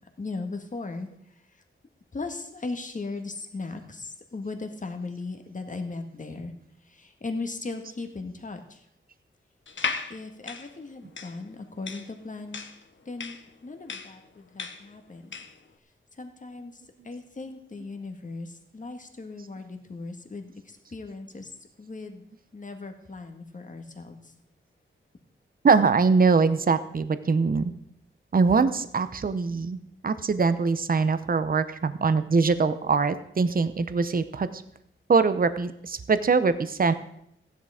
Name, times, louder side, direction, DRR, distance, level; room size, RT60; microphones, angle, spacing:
voice 1, 0.2-1.1 2.1-6.5 6.8-8.8 10.1-12.6 13.0-13.4 13.6-15.4 16.2-22.2 22.5-24.3, left 3 dB, 40° left, 6 dB, 1.7 m, -38 dB
sound 1, 9.7-15.6, left 5 dB, 65° left, 1.1 m, -36 dB
voice 2, 25.6-27.7 28.3-29.8 30.0-34.6 35.1-36.9, right 4 dB, 45° right, 12 dB, 0.8 m, -23 dB
15.5 x 10.5 x 5.0 m, 0.74 s
wide cardioid pair, 140°, 21 cm